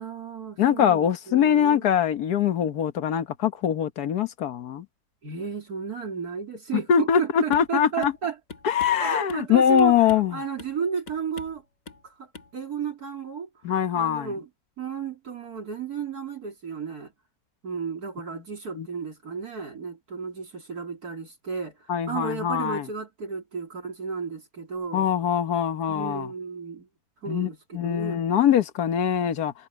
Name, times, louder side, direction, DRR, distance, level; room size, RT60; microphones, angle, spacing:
voice 1, 0.0-1.9 5.2-8.4 9.0-11.6 12.0-13.5 13.9-14.5 14.8-17.1 17.6-25.1 25.9-26.9 27.2-28.2, right 6 dB, 75° right, 3.6 m, -33 dB
voice 2, 0.6-4.8 6.9-8.1 8.6-10.4 13.6-14.3 18.7-18.9 21.9-22.8 24.9-26.3 27.3-29.5, left 9 dB, 85° left, 1.6 m, -23 dB
sound 1, 7.5-7.7 8.0-8.2 8.5-9.5 9.8-10.3 10.6-10.8 11.1-11.6 11.9-12.1 12.3-12.5, left 4 dB, 60° left, 2.7 m, -43 dB
omnidirectional pair, 1.6 m